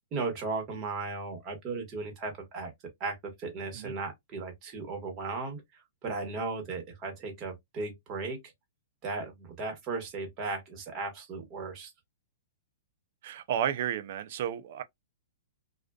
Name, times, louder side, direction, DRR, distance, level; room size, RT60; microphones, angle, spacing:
voice 1, 0.1-2.7 3.0-8.4 9.0-11.9, right 3 dB, 30° right, 1.2 m, -36 dB
voice 2, 13.2-14.8, right 9 dB, 55° right, 0.4 m, -32 dB
2.4 x 2.3 x 2.2 m
hypercardioid pair, 135°, 0 cm